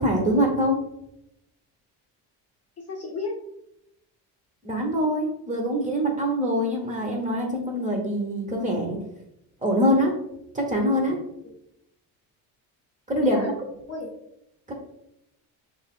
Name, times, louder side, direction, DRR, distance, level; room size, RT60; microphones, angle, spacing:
voice 1, 0.0-0.8 4.6-9.0 9.6-10.1 10.5-11.2 13.1-13.4 14.7-14.8, equal, 15° right, -1 dB, 1.0 m, -24 dB
voice 2, 2.8-3.3 11.4-11.5 13.2-13.5 13.9-14.1, left 3 dB, 35° left, -1 dB, 0.8 m, -33 dB
5.4 x 2.0 x 2.4 m, 0.83 s
supercardioid pair, 85°, 44 cm